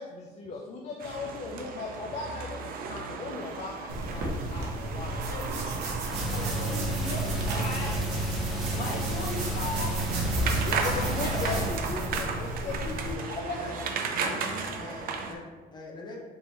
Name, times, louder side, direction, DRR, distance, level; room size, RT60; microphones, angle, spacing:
voice 1, 0.0-5.7 10.6-13.8, left 4 dB, 40° left, 0 dB, 0.5 m, -38 dB
sound 1, 1.0-15.3, right 5 dB, 60° right, 0.5 m, -36 dB
sound 2, 3.9-13.1, right 2 dB, 85° right, 0.8 m, -33 dB
voice 2, 5.3-5.6 6.3-8.0 8.5-10.0 10.9-11.6 13.5-13.6, left 2 dB, 70° left, -3 dB, 1.2 m, -37 dB
sound 3, 6.1-11.7, right 1 dB, ahead, 1.0 m, -33 dB
voice 3, 14.2-15.4 15.7-16.2, left 2 dB, 25° left, -2 dB, 0.8 m, -42 dB
3.7 x 2.9 x 4.1 m, 1.4 s
cardioid pair, 110°, 17 cm